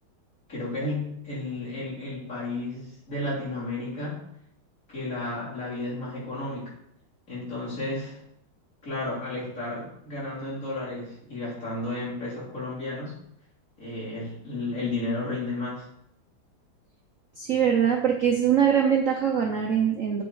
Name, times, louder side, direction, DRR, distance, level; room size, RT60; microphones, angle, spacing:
voice 1, 0.5-4.2 4.9-6.7 7.3-8.2 8.8-13.2 13.8-15.9, left 2 dB, 35° left, -8 dB, 3.5 m, -32 dB
voice 2, 17.4-20.2, right 8 dB, 75° right, 1 dB, 0.7 m, -22 dB
8.9 x 4.2 x 4.7 m, 0.74 s
omnidirectional pair, 2.3 m